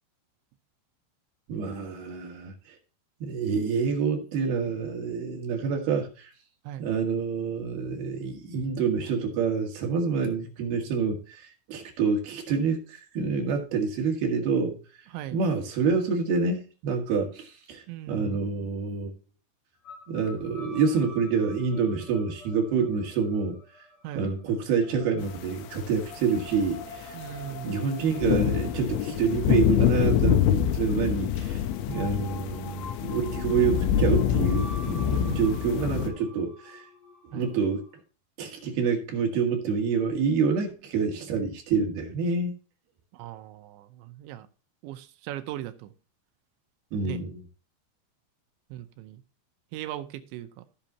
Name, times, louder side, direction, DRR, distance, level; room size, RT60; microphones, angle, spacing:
voice 1, 1.5-2.5 3.2-6.3 6.8-14.8 15.3-19.1 20.1-23.6 24.2-27.2 27.6-31.6 31.9-36.8 37.3-37.8 38.4-42.5 46.9-47.4, right 5 dB, 60° right, 3.6 m, -27 dB
voice 2, 17.9-18.4 24.0-24.3 27.1-27.9 35.1-35.4 37.3-37.5 43.1-44.5 44.8-45.9 47.0-47.2 48.7-49.2 49.7-50.6, right 12 dB, 80° right, 3.1 m, -39 dB
sound 1, 19.8-38.0, left 3 dB, 50° left, 2.2 m, -46 dB
sound 2, 25.8-25.9 26.4-36.1, left 10 dB, 85° left, 3.3 m, -26 dB
16.0 x 6.9 x 2.8 m
omnidirectional pair, 5.3 m